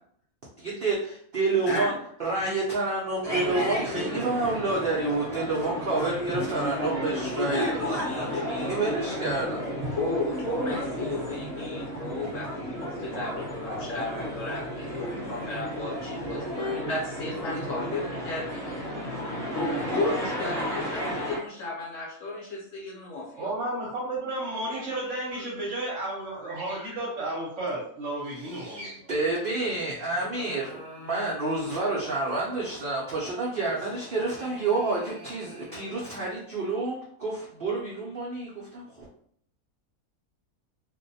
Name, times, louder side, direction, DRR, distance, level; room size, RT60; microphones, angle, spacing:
voice 1, 0.6-1.9 2.2-7.8 8.3-9.7 28.4-39.1, right 3 dB, 85° right, -5 dB, 0.4 m, -29 dB
voice 2, 1.6-1.9 6.2-6.3 7.4-8.8 9.9-18.8 19.5-23.5, left 2 dB, 65° left, -2 dB, 1.0 m, -34 dB
sound 1, 3.2-21.4, equal, 30° right, 0.7 m, -32 dB
voice 3, 23.4-29.1, right 1 dB, 60° right, -4 dB, 0.9 m, -32 dB
sound 2, 29.9-32.7 33.7-36.3, equal, 5° left, 0.6 m, -48 dB
2.5 x 2.1 x 2.6 m, 0.64 s
omnidirectional pair, 1.6 m